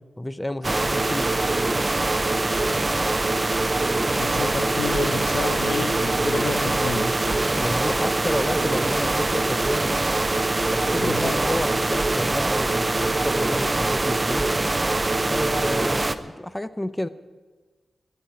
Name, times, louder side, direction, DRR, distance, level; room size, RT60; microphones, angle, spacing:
voice 1, 0.2-1.3 4.4-4.5 7.5-10.1 10.7-14.5 15.3-17.1, left 1 dB, 15° left, 13 dB, 0.6 m, -30 dB
sound 1, 0.6-16.1, right 2 dB, 30° right, 0.8 m, -23 dB
voice 2, 4.2-7.6 11.0-11.6, left 3 dB, 90° left, 7 dB, 1.5 m, -30 dB
12.5 x 9.8 x 10.0 m, 1.4 s
cardioid pair, 75°, 0 cm